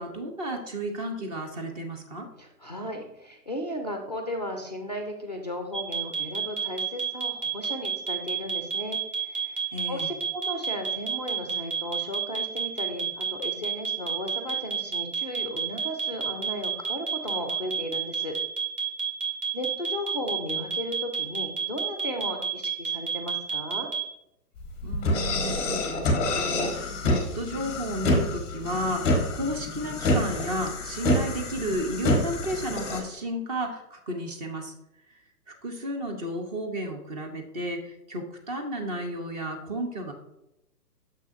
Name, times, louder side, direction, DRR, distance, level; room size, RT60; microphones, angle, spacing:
voice 1, 0.0-2.3 9.7-10.1 24.8-34.7 35.1-35.2 35.6-40.1, right 1 dB, 25° right, 3 dB, 0.9 m, -33 dB
voice 2, 2.4-18.4 19.5-23.9, left 1 dB, 30° left, 4 dB, 0.4 m, -35 dB
sound 1, 5.7-24.0, right 6 dB, 75° right, 2.4 m, -29 dB
sound 2, 24.6-33.0, left 1 dB, 10° left, 0.8 m, -27 dB
6.6 x 6.0 x 2.6 m, 0.85 s
figure-of-eight pair, 125°, 47 cm